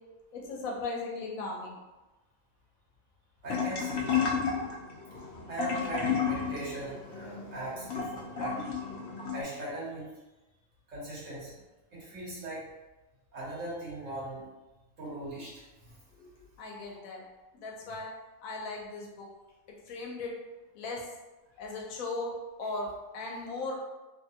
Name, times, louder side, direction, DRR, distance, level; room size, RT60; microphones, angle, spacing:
voice 1, 0.3-1.8 16.2-16.3 16.6-17.2 17.5-18.1 18.4-19.3 19.9-20.3 20.7-21.0 21.6-23.8, left 2 dB, 80° left, 0 dB, 1.1 m, -37 dB
voice 2, 3.4-4.2 5.5-8.6 9.3-10.1 10.9-11.6 11.9-12.6 13.3-14.4 15.0-16.0, right 1 dB, 65° right, -7 dB, 1.5 m, -39 dB
sound 1, 3.5-9.4, left 6 dB, 65° left, 0.7 m, -32 dB
3.1 x 2.2 x 2.7 m, 1.1 s
omnidirectional pair, 1.4 m